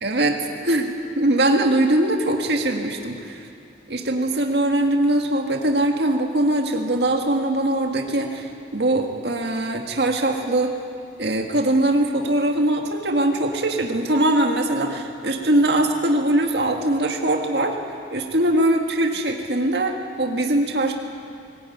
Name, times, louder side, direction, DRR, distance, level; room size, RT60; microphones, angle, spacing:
voice 1, 0.0-3.4 3.9-10.7 11.2-17.8 18.1-20.9, right 1 dB, 70° right, 3 dB, 1.9 m, -21 dB
20.5 x 19.0 x 9.4 m, 2.3 s
head